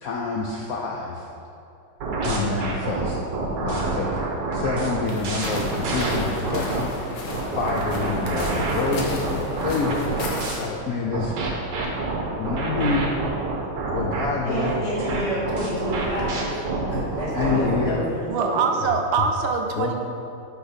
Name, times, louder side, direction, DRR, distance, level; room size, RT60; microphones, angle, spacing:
voice 1, 0.0-1.3 2.2-3.2 3.6-4.2 4.5-6.9 7.5-10.3 10.6-11.6 12.4-13.1 13.9-15.2 16.9-18.0 19.8-19.9, left 4 dB, 85° left, -1 dB, 0.7 m, -27 dB
sound 1, 2.0-6.8 7.3-10.5 11.1-17.8, right 3 dB, 60° right, 1.6 m, -27 dB
sound 2, 5.1-10.7, left 2 dB, 65° left, 1.6 m, -33 dB
voice 2, 14.4-16.7 17.1-18.7, equal, 20° left, -7 dB, 1.4 m, -29 dB
voice 3, 18.3-19.9, right 5 dB, 75° right, 4 dB, 1.3 m, -23 dB
5.9 x 5.8 x 5.7 m, 2.6 s
omnidirectional pair, 2.3 m